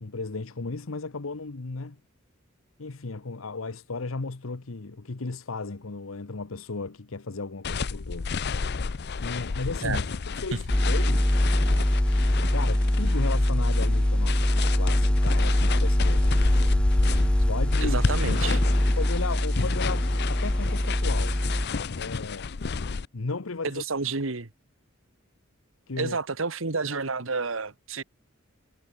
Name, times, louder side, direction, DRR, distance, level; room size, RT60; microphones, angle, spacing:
voice 1, 0.0-2.0 2.8-8.3 9.2-10.1 10.4-11.3 12.5-16.4 17.5-18.0 19.0-21.4 22.0-22.5 23.1-23.8 25.9-26.2, left 3 dB, 85° left, 1.0 m, -35 dB
sound 1, 7.6-23.1, left 4 dB, 55° left, 0.6 m, -32 dB
sound 2, 10.7-21.7, left 1 dB, 5° left, 0.3 m, -23 dB
voice 2, 17.8-18.6 23.6-24.5 26.0-28.0, right 4 dB, 70° right, 1.5 m, -30 dB
head